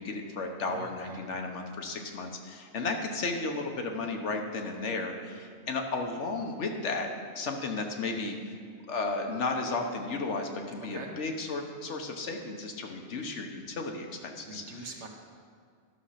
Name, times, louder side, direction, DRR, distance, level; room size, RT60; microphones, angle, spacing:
voice 1, 0.0-8.6 8.9-14.9, left 3 dB, 75° left, 3 dB, 1.4 m, -34 dB
voice 2, 0.6-1.3 10.9-11.1 14.4-15.1, right 3 dB, 75° right, 2 dB, 1.4 m, -43 dB
12.0 x 6.5 x 5.7 m, 2.2 s
omnidirectional pair, 1.2 m